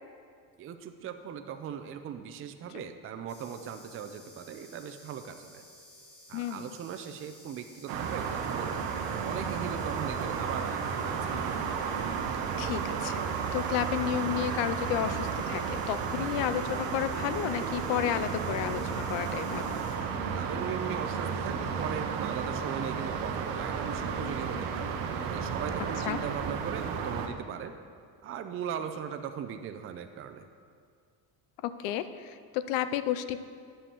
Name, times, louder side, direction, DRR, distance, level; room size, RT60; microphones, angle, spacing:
voice 1, 0.6-5.6 6.3-8.8 9.2-11.4 20.3-24.9 25.3-27.7 28.2-30.5, right 8 dB, 35° right, 7 dB, 0.4 m, -39 dB
sound 1, 3.3-20.0, left 1 dB, 25° left, 2.1 m, -54 dB
voice 2, 6.3-6.7 12.6-13.2 13.5-19.7 26.0-26.2 31.6-33.4, left 11 dB, 90° left, 12 dB, 0.5 m, -32 dB
sound 2, 7.9-27.3, right 6 dB, 80° right, 0.8 m, -33 dB
9.8 x 7.2 x 2.9 m, 2.1 s
cardioid pair, 105°, 42 cm